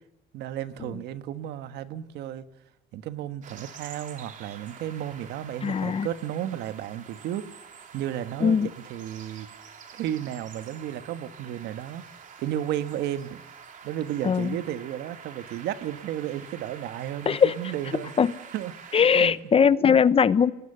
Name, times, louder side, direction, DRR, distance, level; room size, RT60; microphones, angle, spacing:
voice 1, 0.3-2.4 2.9-7.5 7.9-8.6 8.9-9.5 9.9-12.0 12.4-13.4 13.8-18.1 18.5-19.4, right 11 dB, 80° right, 11 dB, 1.4 m, -33 dB
sound 1, 3.4-19.3, right 6 dB, 50° right, 3.3 m, -47 dB
voice 2, 5.6-6.1 8.4-8.7 14.2-14.6 17.3-17.5 18.2-18.3 18.9-20.5, left 7 dB, 35° left, 16 dB, 0.8 m, -20 dB
27.0 x 20.0 x 6.7 m, 0.91 s
cardioid pair, 110°, 17 cm